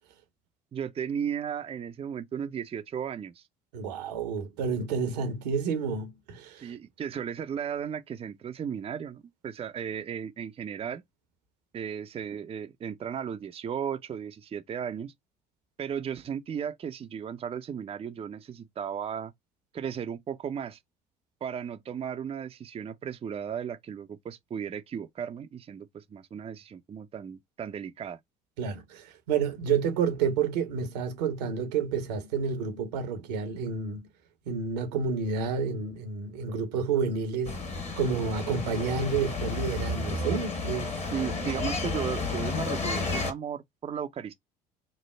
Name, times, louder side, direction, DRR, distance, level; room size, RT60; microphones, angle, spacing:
voice 1, 0.7-3.4 6.6-11.0 11.7-15.1 15.8-19.3 19.7-20.8 21.4-28.2 41.0-44.3, right 8 dB, 30° right, 0.5 m, -35 dB
voice 2, 3.7-6.7 28.6-34.1 34.5-37.6 38.0-40.9, right 5 dB, 75° right, 0.8 m, -30 dB
sound 1, 37.4-43.3, left 3 dB, 30° left, 1.3 m, -32 dB
3.2 x 2.0 x 3.2 m
hypercardioid pair, 60°, 21 cm